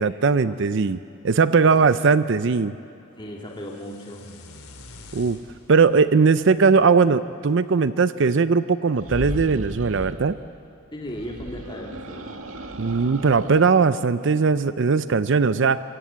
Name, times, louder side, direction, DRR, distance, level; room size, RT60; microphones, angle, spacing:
voice 1, 0.0-2.7 5.1-5.4 5.7-10.4 12.8-15.8, right 5 dB, 55° right, 14 dB, 0.5 m, -19 dB
voice 2, 1.6-1.9 3.2-4.3 10.9-12.4, equal, 20° left, -1 dB, 2.3 m, -36 dB
sound 1, 3.4-7.6, left 2 dB, 80° left, 3.1 m, -47 dB
sound 2, 8.9-10.2 11.1-13.7, right 1 dB, 75° right, 2.1 m, -36 dB
27.0 x 22.5 x 8.6 m, 2.8 s
head